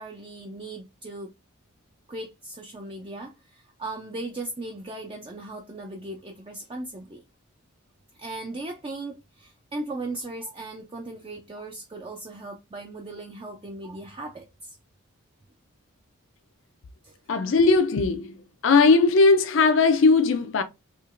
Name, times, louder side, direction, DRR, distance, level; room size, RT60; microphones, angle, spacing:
voice 1, 0.0-1.3 2.1-7.2 8.2-14.8 17.0-17.1, right 2 dB, 25° right, 0.4 m, -37 dB
voice 2, 17.3-18.3 18.6-20.6, left 4 dB, 55° left, 0.4 m, -18 dB
4.4 x 2.9 x 2.4 m
head